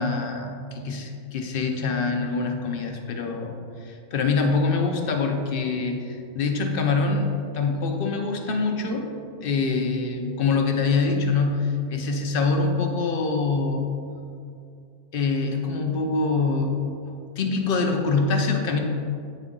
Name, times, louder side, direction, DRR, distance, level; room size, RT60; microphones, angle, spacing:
voice 1, 0.0-9.1 9.4-13.9 15.1-16.7 17.1-18.8, left 4 dB, 55° left, 4 dB, 0.7 m, -25 dB
9.1 x 3.9 x 3.6 m, 2.4 s
omnidirectional pair, 1.4 m